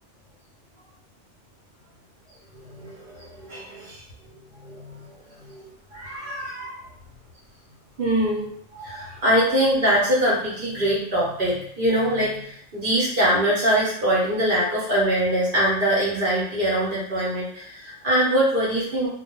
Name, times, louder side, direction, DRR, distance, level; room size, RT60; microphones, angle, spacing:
voice 1, 2.7-4.0 4.6-5.1 5.5-6.8 8.0-19.1, right 1 dB, 50° right, -7 dB, 0.8 m, -23 dB
2.2 x 2.1 x 2.9 m, 0.65 s
omnidirectional pair, 1.4 m